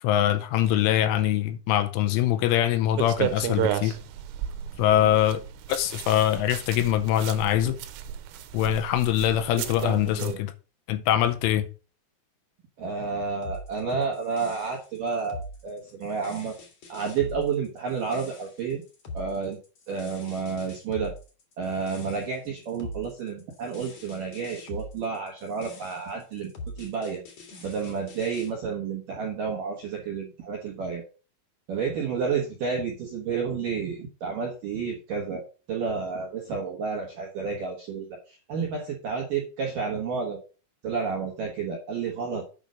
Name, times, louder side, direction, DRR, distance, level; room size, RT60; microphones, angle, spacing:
voice 1, 0.0-4.0 4.8-5.4 5.7-7.8 8.5-10.5 10.9-11.7, left 12 dB, 80° left, 3.1 m, -23 dB
sound 1, 3.0-10.4, right 11 dB, 90° right, 3.4 m, -33 dB
voice 2, 9.8-10.4 12.8-16.5 16.9-18.8 19.1-19.6 19.9-21.1 21.6-27.2 27.6-31.0 31.7-35.4 35.7-40.4 40.8-42.4, right 5 dB, 75° right, 2.0 m, -30 dB
sound 2, 13.4-28.5, left 1 dB, 55° left, 1.6 m, -43 dB
9.0 x 5.4 x 5.1 m
omnidirectional pair, 5.9 m